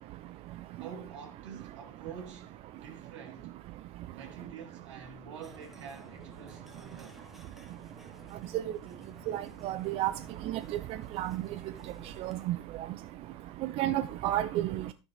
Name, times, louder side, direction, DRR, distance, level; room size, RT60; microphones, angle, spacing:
voice 1, 0.8-3.5 4.1-7.2, right 6 dB, 70° right, 3.6 m, -47 dB
sound 1, 5.4-12.5, equal, ahead, 1.6 m, -54 dB
voice 2, 9.3-10.1 11.2-11.4 12.2-12.6 13.8-14.8, right 14 dB, 40° right, 0.6 m, -30 dB
12.0 x 9.8 x 3.5 m
hypercardioid pair, 100°, 16 cm